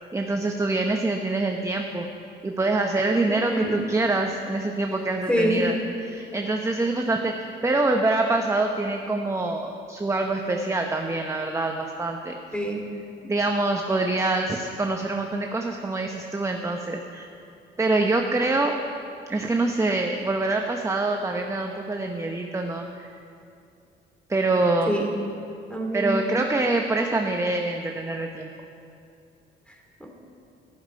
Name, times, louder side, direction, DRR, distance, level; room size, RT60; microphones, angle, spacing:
voice 1, 0.1-2.1 2.4-5.8 6.0-12.4 13.2-17.3 17.8-18.8 19.3-23.1 24.3-24.9 25.9-28.5, right 2 dB, 15° right, 3 dB, 0.8 m, -25 dB
voice 2, 3.3-3.8 5.3-5.7 12.5-12.9 24.9-25.1 25.7-26.2 30.0-30.1, equal, 5° left, 1 dB, 2.7 m, -25 dB
14.0 x 7.3 x 9.2 m, 2.5 s
cardioid pair, 90°, 20 cm